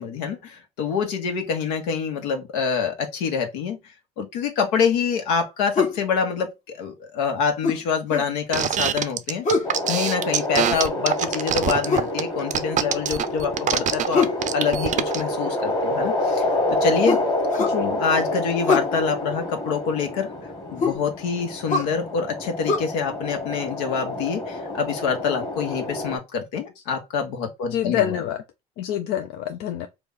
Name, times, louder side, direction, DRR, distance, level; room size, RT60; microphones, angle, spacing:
voice 1, 0.0-3.8 4.2-9.4 9.9-14.2 14.5-16.5 16.8-17.2 18.0-20.3 20.7-28.2, left 6 dB, 85° left, 1.0 m, -26 dB
sound 1, 5.8-6.0 7.6-8.3 9.4-9.8 11.9-12.2 14.1-14.4 17.1-17.8 18.6-18.9 20.8-21.0 21.7-21.9 22.7-22.8, left 4 dB, 40° left, 0.9 m, -23 dB
sound 2, 8.5-15.2, right 9 dB, 40° right, 0.5 m, -24 dB
sound 3, 9.6-26.2, left 1 dB, 20° left, 1.3 m, -28 dB
voice 2, 17.6-18.0 27.7-28.4 28.8-29.9, left 11 dB, 65° left, 0.5 m, -26 dB
3.1 x 2.2 x 3.5 m
supercardioid pair, 75°, 19 cm